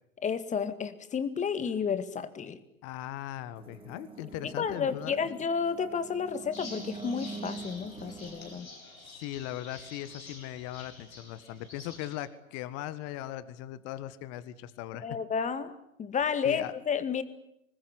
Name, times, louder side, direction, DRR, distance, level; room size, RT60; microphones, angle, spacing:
voice 1, 0.2-2.6 4.4-8.7 15.0-17.2, left 6 dB, 20° left, 12 dB, 2.0 m, -31 dB
voice 2, 2.8-5.2 9.0-15.1 16.4-16.7, left 13 dB, 40° left, 15 dB, 1.6 m, -39 dB
sound 1, 3.6-8.6, right 3 dB, 15° right, 3.3 m, -44 dB
sound 2, 6.5-12.1, left 2 dB, 85° left, 7.6 m, -48 dB
26.0 x 20.0 x 9.8 m, 0.79 s
figure-of-eight pair, 100°, 41 cm